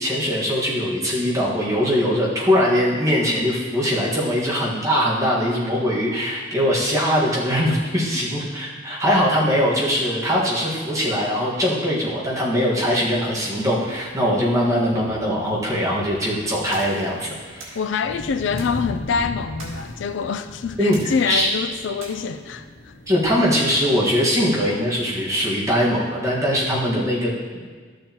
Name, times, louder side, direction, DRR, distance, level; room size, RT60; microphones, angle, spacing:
voice 1, 0.0-17.8 20.8-21.5 23.1-27.3, equal, 15° right, 1.6 m, -21 dB
sound 1, 12.8-25.3, left 1 dB, 50° left, 0.7 m, -39 dB
sound 2, 16.7-17.1 17.6-17.8 18.6-18.8 19.6-20.0 20.9-21.4 22.0-22.1, right 3 dB, 85° right, 2.0 m, -41 dB
voice 2, 17.8-22.9, left 5 dB, 65° left, 0.3 m, -25 dB
12.0 x 6.5 x 3.0 m
head